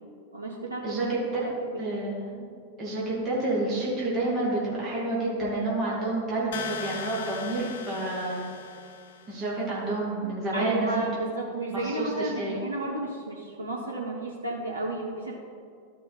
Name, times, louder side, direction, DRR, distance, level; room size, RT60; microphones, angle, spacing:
voice 1, 0.3-1.1 1.4-2.0 10.5-15.3, right 2 dB, 80° right, -2 dB, 0.9 m, -32 dB
voice 2, 0.8-1.4 1.8-2.5 2.8-8.4 9.3-10.9 11.7-12.6, right 2 dB, 30° right, -6 dB, 2.1 m, -29 dB
sound 1, 6.5-9.4, left 7 dB, 60° left, 0.5 m, -38 dB
12.5 x 5.1 x 4.0 m, 2.3 s
figure-of-eight pair, 90°, 0 cm